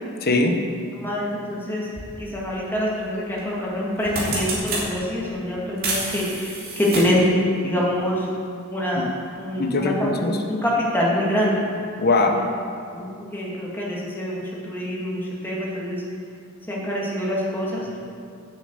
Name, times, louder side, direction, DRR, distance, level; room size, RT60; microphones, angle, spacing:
voice 1, 0.2-0.6 8.9-9.0 9.5-10.4 12.0-12.4, left 2 dB, 50° left, 4 dB, 1.1 m, -21 dB
voice 2, 1.0-1.9 2.2-7.3 7.6-8.3 8.7-9.1 9.4-11.6 12.3-12.4 12.9-16.0 16.7-18.0, equal, 10° left, -5 dB, 2.1 m, -25 dB
sound 1, 1.9-2.1 3.4-3.6 3.9-4.9 5.8-7.2, right 2 dB, 45° right, 2.7 m, -28 dB
8.6 x 7.0 x 8.1 m, 2.4 s
head